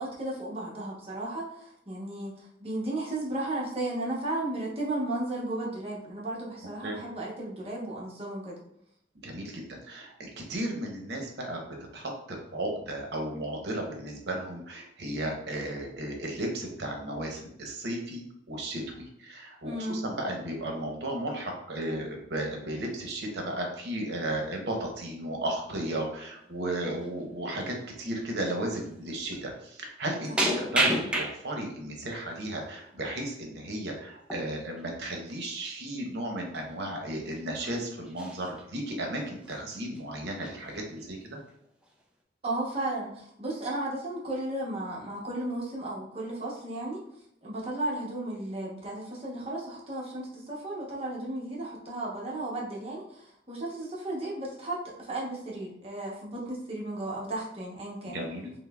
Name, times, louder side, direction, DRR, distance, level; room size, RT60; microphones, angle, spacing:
voice 1, 0.0-8.6 19.6-20.0 30.3-30.7 42.4-47.0 47.4-58.2, right 1 dB, 35° right, -4 dB, 0.9 m, -34 dB
voice 2, 9.2-11.6 11.9-41.4 58.1-58.5, right 1 dB, 70° right, 1 dB, 0.8 m, -34 dB
sound 1, 26.2-26.5 26.9-27.1 27.7-27.8 28.8-28.9 29.2-29.4 30.4-31.7 32.2-32.8 34.2-34.5 34.8-34.9 35.3-35.5 36.2-36.3 36.5-36.7 37.2-37.8 38.0-38.7 39.2-39.6 39.9-40.0 40.3-41.1 41.5-41.9, right 1 dB, 5° right, 0.4 m, -31 dB
5.4 x 2.1 x 2.3 m, 0.74 s
head